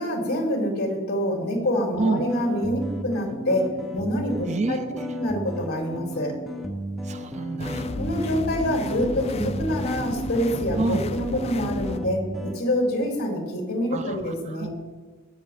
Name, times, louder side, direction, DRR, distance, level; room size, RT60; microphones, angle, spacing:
voice 1, 0.0-3.7 3.9-4.8 5.1-6.4 8.0-12.2 12.5-14.7, equal, 50° left, 0 dB, 2.9 m, -26 dB
sound 1, 2.0-12.6, right 1 dB, ahead, 0.8 m, -33 dB
voice 2, 4.5-5.0 7.1-7.9 10.8-11.0 13.9-14.2 14.5-14.7, right 3 dB, 35° right, 10 dB, 0.5 m, -27 dB
sound 2, 7.6-12.0, left 3 dB, 30° left, 0.4 m, -34 dB
17.5 x 6.8 x 3.5 m, 1.4 s
head